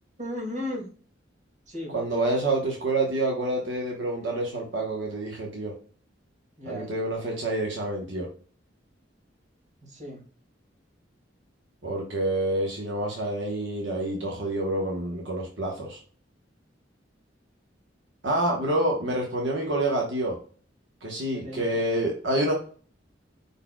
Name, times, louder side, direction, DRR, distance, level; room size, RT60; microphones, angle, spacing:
voice 1, 0.2-0.9 1.7-1.9 6.6-7.3 9.8-10.2 21.3-21.9, left 1 dB, 40° right, -3 dB, 2.4 m, -36 dB
voice 2, 1.9-5.7 6.7-8.3 11.8-16.0 18.2-20.4 21.0-22.5, right 1 dB, 80° right, -1 dB, 1.2 m, -27 dB
5.3 x 4.2 x 2.3 m, 0.42 s
head